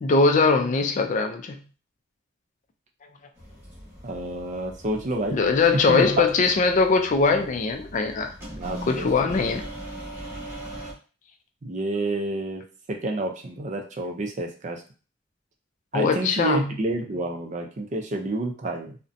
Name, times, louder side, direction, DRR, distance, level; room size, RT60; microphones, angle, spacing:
voice 1, 0.0-1.6 5.3-8.3 8.9-9.7 15.9-16.7, left 4 dB, 40° left, 5 dB, 0.3 m, -21 dB
sound 1, 3.3-10.9, right 1 dB, 10° right, 0.9 m, -40 dB
voice 2, 4.0-5.4 5.9-6.2 8.6-9.4 11.6-12.6 12.9-14.8 15.9-19.0, right 2 dB, 40° right, 3 dB, 0.4 m, -29 dB
2.6 x 2.1 x 2.5 m, 0.36 s
head